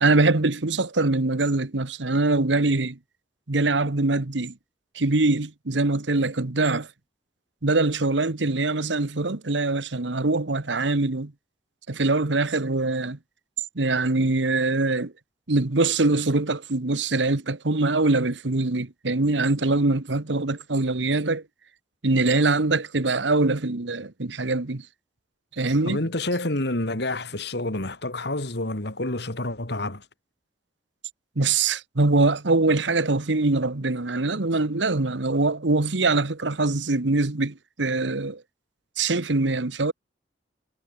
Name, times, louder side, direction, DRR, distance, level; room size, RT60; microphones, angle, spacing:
voice 1, 0.0-3.0 3.5-4.6 4.9-6.9 7.6-11.3 11.9-13.2 13.7-15.1 15.5-21.4 22.0-24.9 25.5-26.0 31.4-38.4 39.0-39.9, right 2 dB, 90° right, 1.4 m, -23 dB
voice 2, 25.8-30.0, left 2 dB, 65° left, 3.1 m, -28 dB
head